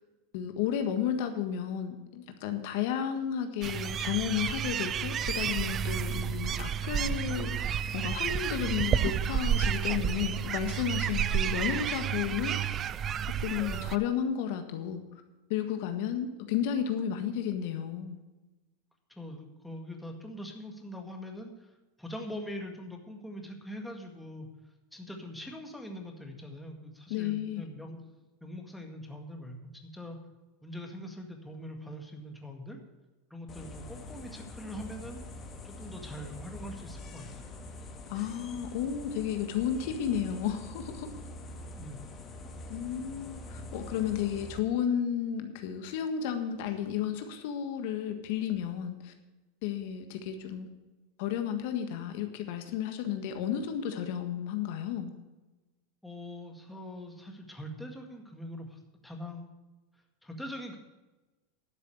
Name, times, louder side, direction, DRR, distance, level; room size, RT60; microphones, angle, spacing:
voice 1, 0.3-12.6 13.4-15.0 15.5-18.2 27.1-27.6 38.1-41.1 42.7-49.1 49.6-50.6 51.2-55.1, left 9 dB, 65° left, 7 dB, 1.5 m, -32 dB
sound 1, 3.6-14.0, right 8 dB, 30° right, 0.5 m, -31 dB
voice 2, 19.1-21.7 22.0-24.5 24.9-28.0 28.4-30.2 30.6-32.8 33.3-35.2 35.6-37.5 41.7-42.0 56.0-59.5 60.2-60.8, equal, 5° left, 2 dB, 2.0 m, -43 dB
sound 2, 33.5-44.6, left 2 dB, 25° left, 1.9 m, -45 dB
11.5 x 6.8 x 7.9 m, 1.1 s
supercardioid pair, 125°, 0 cm